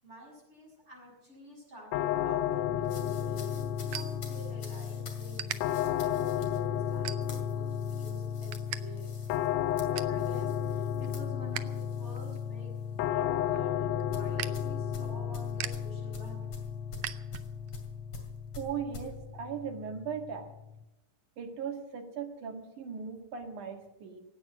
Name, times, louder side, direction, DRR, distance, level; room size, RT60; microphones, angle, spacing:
voice 1, 0.0-9.1 10.0-16.5, equal, 20° right, -2 dB, 6.4 m, -49 dB
sound 1, 1.9-20.8, left 9 dB, 75° left, 1.7 m, -33 dB
sound 2, 2.8-12.5 12.8-13.1 14.1-19.1, left 4 dB, 45° left, 3.0 m, -49 dB
sound 3, 2.8-4.8 5.3-5.6 6.1-6.4 7.0-7.6 8.0-8.8 9.1-9.2 9.6-10.2 10.7-11.8 12.1-17.8, right 12 dB, 85° right, 1.4 m, -42 dB
voice 2, 18.6-20.5 21.4-24.2, right 7 dB, 70° right, 4 dB, 3.3 m, -38 dB
17.0 x 9.2 x 8.6 m, 0.92 s
omnidirectional pair, 3.7 m